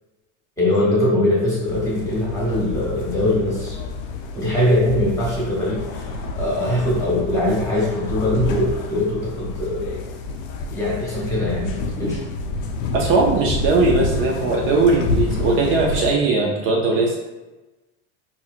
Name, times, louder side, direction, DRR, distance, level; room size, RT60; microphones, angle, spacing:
voice 1, 0.6-3.8 4.3-10.0 10.7-12.2, left 1 dB, 10° left, -6 dB, 1.0 m, -22 dB
sound 1, 1.6-16.1, left 3 dB, 55° left, 0.5 m, -28 dB
voice 2, 12.9-17.2, right 3 dB, 35° right, -2 dB, 0.4 m, -19 dB
4.6 x 2.8 x 2.4 m, 1.1 s
cardioid pair, 175°, 34 cm